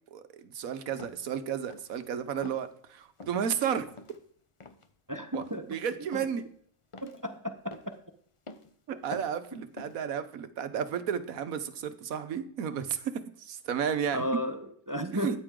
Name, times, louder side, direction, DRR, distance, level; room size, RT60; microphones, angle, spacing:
voice 1, 0.1-3.8 5.3-6.4 8.9-14.2 15.1-15.4, right 8 dB, 80° right, 1.4 m, -33 dB
sound 1, 1.0-1.3 1.7-2.0 2.4-2.7 3.2-3.4 3.9-4.2 4.6-4.9 5.3-5.6 6.1-6.5 6.9-7.3 7.7-8.0 8.5-8.7 9.1-9.5 9.8-10.1, left 3 dB, 30° left, 0.7 m, -47 dB
voice 2, 5.1-5.6 7.0-7.4 14.1-15.4, equal, 15° right, 0.7 m, -33 dB
14.0 x 9.6 x 3.7 m
omnidirectional pair, 1.4 m